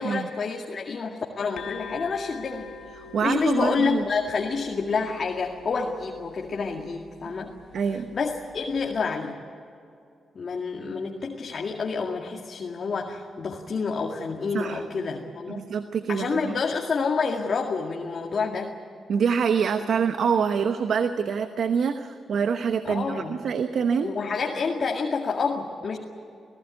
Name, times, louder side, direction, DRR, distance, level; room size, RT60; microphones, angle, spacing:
voice 1, 0.0-2.7 3.2-7.5 7.9-9.4 10.3-15.6 16.1-18.8 22.8-23.4 24.0-26.0, left 4 dB, 55° left, 1 dB, 2.1 m, -28 dB
sound 1, 1.6-9.1, left 5 dB, 75° left, 1.3 m, -45 dB
voice 2, 3.0-4.0 7.7-8.1 14.5-14.8 15.5-16.6 19.1-24.1, right 6 dB, 70° right, 9 dB, 1.0 m, -25 dB
27.0 x 17.0 x 9.6 m, 2.5 s
supercardioid pair, 50°, 0 cm